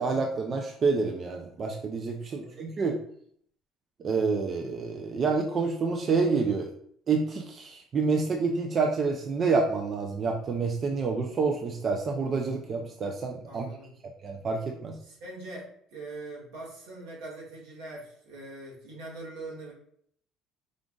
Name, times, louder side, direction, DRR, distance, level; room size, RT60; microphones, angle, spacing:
voice 1, 0.0-3.0 4.0-6.7 7.1-13.6 14.2-15.0, right 4 dB, 35° right, 2 dB, 0.5 m, -28 dB
voice 2, 2.3-2.7 13.5-13.9 15.0-19.7, right 2 dB, 85° right, -4 dB, 1.9 m, -42 dB
5.0 x 2.4 x 3.7 m, 0.64 s
cardioid pair, 130°, 0 cm